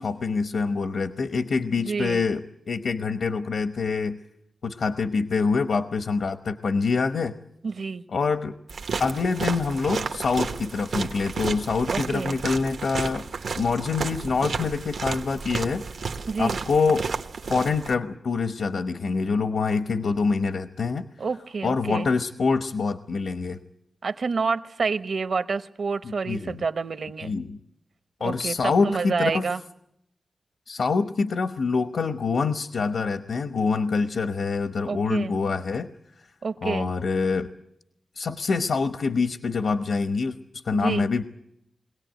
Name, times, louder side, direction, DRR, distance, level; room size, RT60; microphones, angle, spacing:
voice 1, 0.0-2.4 2.7-4.2 4.6-7.3 8.1-8.5 9.0-13.2 13.6-16.0 16.4-17.1 17.5-21.1 21.6-23.6 26.0-26.6 27.2-27.6 28.2-29.5 30.7-35.9 36.6-37.5 38.2-41.2, left 4 dB, 80° left, 9 dB, 1.0 m, -25 dB
voice 2, 1.8-2.2 7.6-8.0 11.9-12.4 16.3-16.6 21.2-22.1 24.0-27.3 28.2-29.6 34.9-35.3 36.4-36.9 40.7-41.1, right 4 dB, 65° right, 11 dB, 1.0 m, -28 dB
sound 1, 8.7-18.0, right 5 dB, 85° right, 1.2 m, -32 dB
23.0 x 18.0 x 9.2 m, 0.79 s
wide cardioid pair, 140°, 0 cm